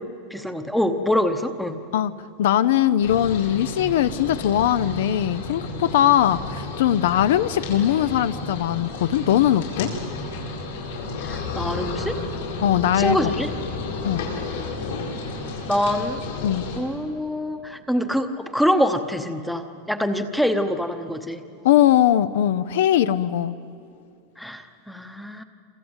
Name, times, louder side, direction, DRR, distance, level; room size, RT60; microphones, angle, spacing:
voice 1, 0.0-1.8 11.2-12.2 12.9-13.5 15.7-16.2 16.8-21.4 24.4-25.4, equal, ahead, 8 dB, 0.9 m, -25 dB
voice 2, 2.4-9.9 12.6-13.3 14.0-14.2 16.4-16.6 21.6-23.6, left 11 dB, 70° left, 14 dB, 0.7 m, -20 dB
sound 1, 3.0-16.8, left 3 dB, 90° left, 7.8 m, -32 dB
27.5 x 26.5 x 8.1 m, 2.6 s
supercardioid pair, 180°, 0 cm